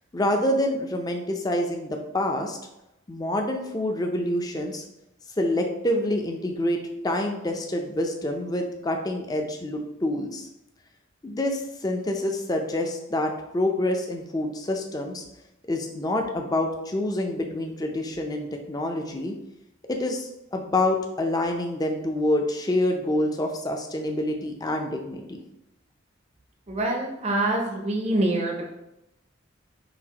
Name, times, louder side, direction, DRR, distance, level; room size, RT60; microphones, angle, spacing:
voice 1, 0.1-2.6 3.1-4.8 5.4-6.8 7.0-10.5 11.2-15.2 15.7-19.3 19.9-25.4, left 1 dB, 20° left, 3 dB, 0.4 m, -27 dB
voice 2, 26.7-28.7, right 1 dB, 30° right, 0 dB, 0.6 m, -25 dB
5.8 x 2.5 x 2.9 m, 0.89 s
head